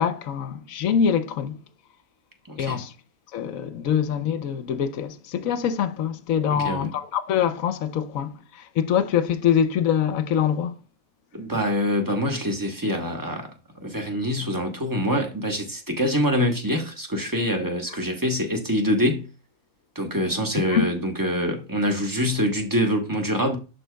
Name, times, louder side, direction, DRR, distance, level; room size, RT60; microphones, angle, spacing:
voice 1, 0.0-1.6 2.6-2.9 3.3-10.7 20.7-20.8, left 8 dB, 70° left, 1.0 m, -24 dB
voice 2, 2.5-2.8 6.5-6.9 11.3-13.5 13.8-19.3 19.9-23.6, equal, 15° right, 0.9 m, -25 dB
11.5 x 4.2 x 2.2 m
omnidirectional pair, 1.6 m